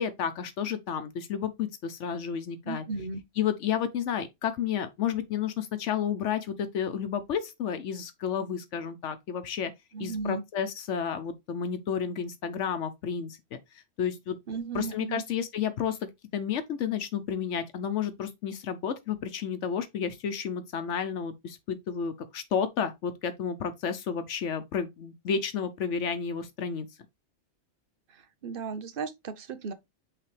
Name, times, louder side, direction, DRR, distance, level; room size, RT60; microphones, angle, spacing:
voice 1, 0.0-2.8 3.4-9.7 10.0-13.6 14.0-14.4 14.7-16.0 16.3-26.9, left 7 dB, 85° left, 1.1 m, -31 dB
voice 2, 2.6-3.2 9.9-10.4 14.5-15.2 28.1-29.7, right 4 dB, 55° right, 0.9 m, -35 dB
8.8 x 3.3 x 3.2 m
omnidirectional pair, 1.2 m